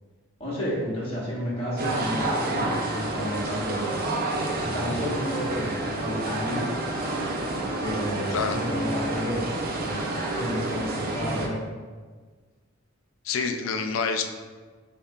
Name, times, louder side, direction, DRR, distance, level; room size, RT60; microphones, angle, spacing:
voice 1, 0.4-3.9 4.7-6.7 7.8-9.4 9.8-10.0 10.3-11.6, equal, 30° left, -7 dB, 1.4 m, -31 dB
sound 1, 1.8-11.5, right 2 dB, 45° right, 0.5 m, -29 dB
voice 2, 13.2-14.3, left 5 dB, 70° left, 6 dB, 0.4 m, -27 dB
7.1 x 2.7 x 2.3 m, 1.5 s
head